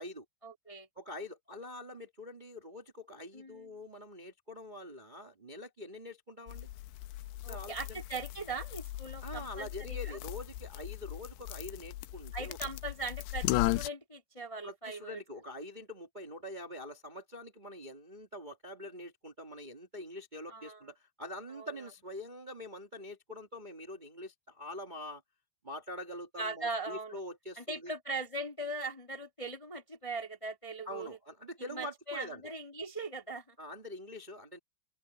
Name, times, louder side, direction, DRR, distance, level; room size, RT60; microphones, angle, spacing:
voice 1, 0.4-0.9 3.3-3.7 7.4-10.2 12.3-15.2 20.5-20.8 21.5-21.7 26.4-27.2 27.6-31.2 31.7-33.5, right 3 dB, 25° left, 0.7 m, -40 dB
voice 2, 0.9-6.7 7.5-8.0 9.2-12.6 14.6-25.2 25.6-27.9 30.8-32.4 33.6-34.6, left 1 dB, 80° right, 0.4 m, -45 dB
sound 1, 6.5-13.9, left 18 dB, 90° left, 2.8 m, -37 dB
open air
omnidirectional pair, 4.8 m